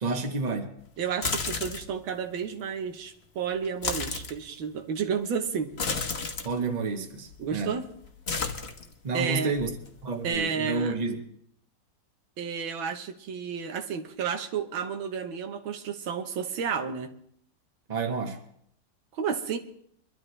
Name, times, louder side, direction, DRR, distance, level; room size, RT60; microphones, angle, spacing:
voice 1, 0.0-0.7 6.4-7.7 9.0-9.7 10.0-11.2 17.9-18.4, right 4 dB, 25° right, 1.1 m, -30 dB
voice 2, 1.0-5.7 7.4-7.8 9.1-9.5 10.2-10.9 12.4-17.1 19.1-19.6, right 7 dB, 90° right, 1.9 m, -31 dB
sound 1, 1.1-2.0 3.6-4.4 5.7-6.5 7.3-7.7 7.9-9.2 9.6-10.3, left 4 dB, 40° left, 1.1 m, -32 dB
23.5 x 12.5 x 3.3 m
omnidirectional pair, 2.1 m